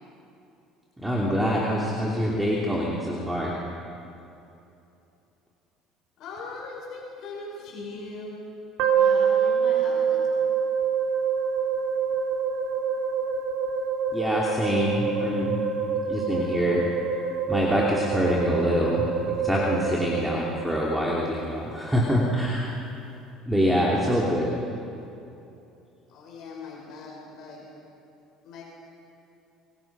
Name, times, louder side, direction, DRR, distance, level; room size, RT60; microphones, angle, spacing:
voice 1, 1.0-3.5 14.1-15.6 16.1-16.8 17.5-19.0 19.4-22.7 23.5-24.5, equal, 5° right, -4 dB, 2.8 m, -25 dB
voice 2, 6.2-8.4 8.9-10.2 26.1-27.7 28.4-28.6, left 3 dB, 55° left, -2 dB, 5.6 m, -40 dB
sound 1, 8.8-21.0, right 6 dB, 70° right, 3.1 m, -26 dB
26.5 x 22.5 x 6.1 m, 2.8 s
cardioid pair, 140°, 0 cm